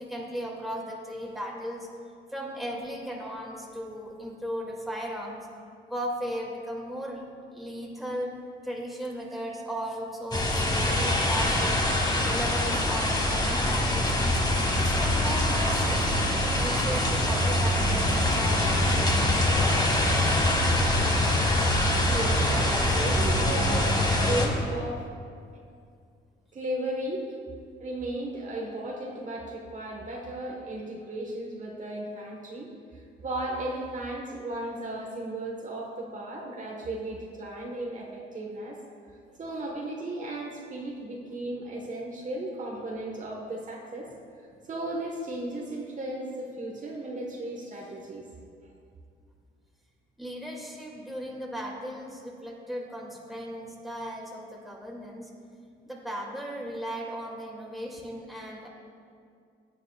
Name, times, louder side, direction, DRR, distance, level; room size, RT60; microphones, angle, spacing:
voice 1, 0.0-1.9 2.3-5.5 5.9-7.2 7.5-8.3 8.6-11.8 12.3-14.4 14.7-16.1 16.4-19.2 50.2-55.3 55.8-58.7, equal, ahead, -2 dB, 2.3 m, -36 dB
sound 1, 10.3-24.5, left 1 dB, 20° left, 1.8 m, -24 dB
voice 2, 21.8-25.0 26.5-27.2 27.8-38.8 39.4-44.1 44.6-48.3, right 1 dB, 40° right, -2 dB, 1.4 m, -35 dB
17.0 x 9.2 x 2.4 m, 2.3 s
cardioid pair, 90°, 20 cm